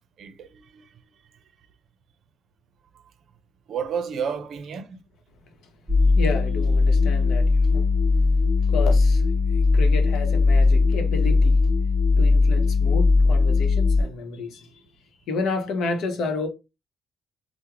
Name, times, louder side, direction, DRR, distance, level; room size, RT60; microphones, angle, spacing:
voice 1, 0.2-1.0 3.7-5.0, right 7 dB, 60° right, 0.5 m, -31 dB
sound 1, 5.9-14.0, left 3 dB, 5° right, 1.0 m, -19 dB
voice 2, 6.1-7.8 8.7-11.6 12.2-14.8 15.3-16.5, left 3 dB, 75° left, 0.8 m, -31 dB
3.5 x 2.1 x 2.9 m
cardioid pair, 135°, 0 cm